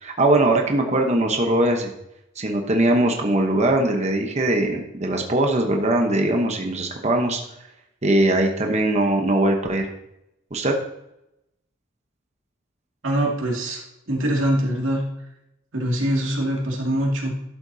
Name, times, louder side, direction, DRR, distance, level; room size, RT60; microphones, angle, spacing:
voice 1, 0.0-1.9 2.4-7.4 8.0-9.9 10.5-10.7, right 1 dB, 35° right, 2 dB, 1.0 m, -21 dB
voice 2, 13.0-13.8 14.1-15.0 15.7-17.3, right 1 dB, 75° right, -2 dB, 2.4 m, -23 dB
12.0 x 7.9 x 2.8 m, 0.85 s
head